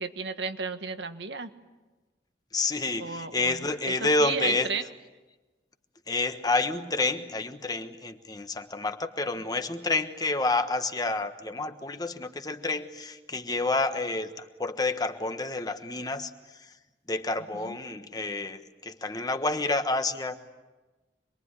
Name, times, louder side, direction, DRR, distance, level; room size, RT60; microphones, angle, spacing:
voice 1, 0.0-1.5 3.0-4.8 17.5-17.8, right 4 dB, 85° right, 8 dB, 1.6 m, -34 dB
voice 2, 2.5-4.7 6.1-16.7 17.1-20.4, left 3 dB, 20° left, 8 dB, 1.3 m, -29 dB
26.5 x 22.0 x 9.8 m, 1.2 s
head